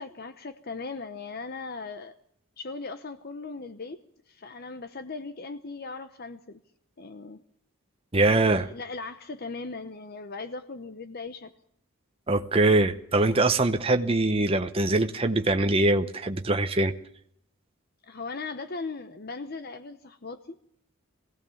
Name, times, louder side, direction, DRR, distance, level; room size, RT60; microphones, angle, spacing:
voice 1, 0.0-2.1 2.6-4.0 4.3-6.6 7.0-7.4 8.3-11.5 18.0-20.6, left 3 dB, 45° left, 11 dB, 0.9 m, -38 dB
voice 2, 8.1-8.7 12.3-16.9, right 2 dB, 25° right, 7 dB, 0.8 m, -23 dB
22.5 x 16.5 x 7.1 m, 0.71 s
head